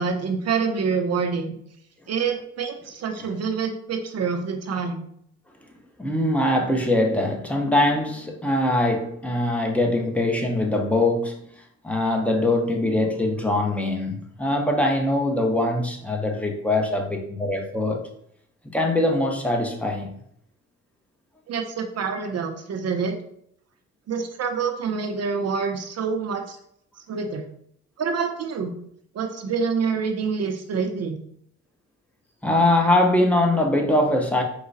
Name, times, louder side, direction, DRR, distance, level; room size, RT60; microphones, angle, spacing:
voice 1, 0.0-1.6 2.1-5.0 21.5-23.2 24.1-26.6 27.0-27.4 28.0-28.7 29.1-31.2, right 5 dB, 55° right, 0.7 m, -26 dB
voice 2, 6.0-11.5 11.8-18.0 18.6-20.2 32.4-34.4, left 1 dB, 5° left, 0.9 m, -22 dB
4.7 x 2.3 x 4.0 m
cardioid pair, 90°, 30 cm